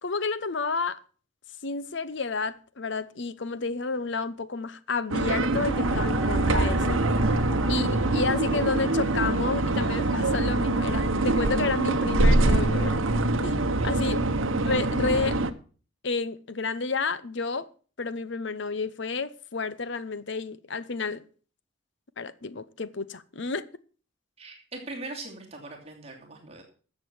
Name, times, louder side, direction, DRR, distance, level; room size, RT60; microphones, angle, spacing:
voice 1, 0.0-1.0 1.6-7.0 7.7-13.0 13.4-13.6 13.8-14.3 14.7-15.4 16.0-17.7 18.0-21.2 22.2-23.6, left 4 dB, 60° left, 0.8 m, -30 dB
sound 1, 5.1-15.5, right 2 dB, 75° right, 1.0 m, -24 dB
sound 2, 5.7-13.2, left 1 dB, 5° right, 6.1 m, -40 dB
voice 2, 13.6-14.0 24.4-26.6, right 2 dB, 30° right, 2.9 m, -41 dB
13.5 x 7.6 x 6.2 m
head